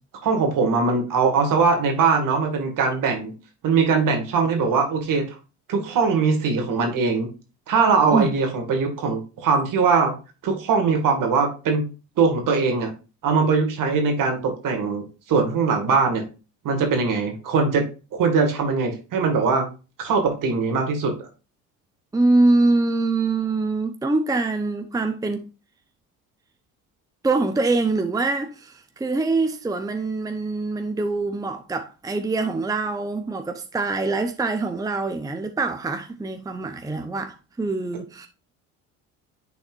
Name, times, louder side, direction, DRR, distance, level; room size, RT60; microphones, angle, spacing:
voice 1, 0.2-3.3 3.6-5.3 5.7-7.3 7.7-10.1 10.4-11.8 12.2-12.9 13.2-16.3 16.6-17.8 18.1-19.7 20.0-21.2, right 4 dB, 60° right, 2.0 m, -21 dB
voice 2, 22.1-25.5 27.2-38.3, right 3 dB, 10° right, 0.7 m, -24 dB
9.7 x 4.1 x 2.5 m
supercardioid pair, 70°, 37 cm